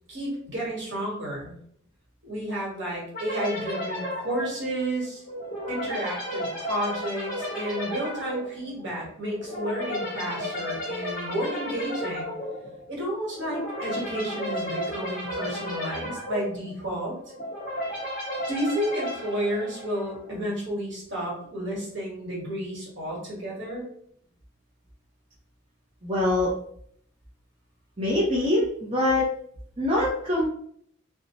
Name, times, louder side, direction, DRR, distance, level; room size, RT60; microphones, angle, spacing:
voice 1, 0.1-1.5 2.2-5.2 5.7-12.3 12.9-17.1 18.5-23.8, equal, 65° right, -4 dB, 1.3 m, -31 dB
sound 1, 3.1-20.3, equal, 45° left, 1.0 m, -33 dB
voice 2, 26.0-26.5 28.0-29.3 29.8-30.5, left 1 dB, 25° right, -6 dB, 0.6 m, -23 dB
2.6 x 2.2 x 2.9 m, 0.64 s
head